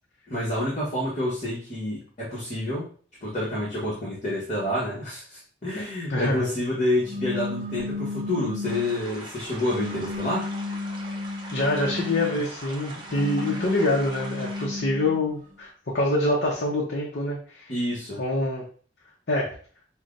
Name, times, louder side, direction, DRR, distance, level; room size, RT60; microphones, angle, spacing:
voice 1, 0.3-2.9 3.2-10.5 17.7-18.2, left 1 dB, 40° left, -7 dB, 1.1 m, -28 dB
voice 2, 5.7-6.5 11.5-17.7 18.2-18.6 19.3-19.6, left 1 dB, 60° left, -2 dB, 0.7 m, -26 dB
sound 1, 7.0-9.1 9.7-12.4 13.0-15.3, left 2 dB, 45° right, 0.5 m, -33 dB
sound 2, 8.6-14.7, right 2 dB, 25° right, 0.9 m, -41 dB
5.5 x 2.2 x 2.5 m, 0.44 s
head